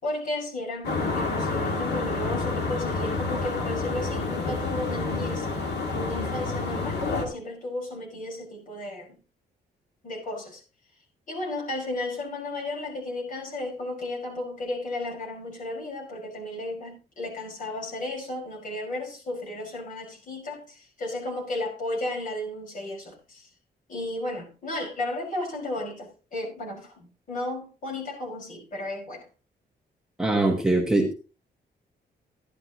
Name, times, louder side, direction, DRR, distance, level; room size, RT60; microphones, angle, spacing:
voice 1, 0.0-5.5 5.9-9.2 10.0-10.6 11.3-23.5 23.9-29.3, left 2 dB, 50° left, 5.2 m, -34 dB
sound 1, 0.8-7.3, left 3 dB, 80° left, 2.2 m, -29 dB
voice 2, 30.2-31.1, right 2 dB, 5° right, 1.3 m, -22 dB
13.5 x 11.0 x 3.0 m
wide cardioid pair, 165°, 17 cm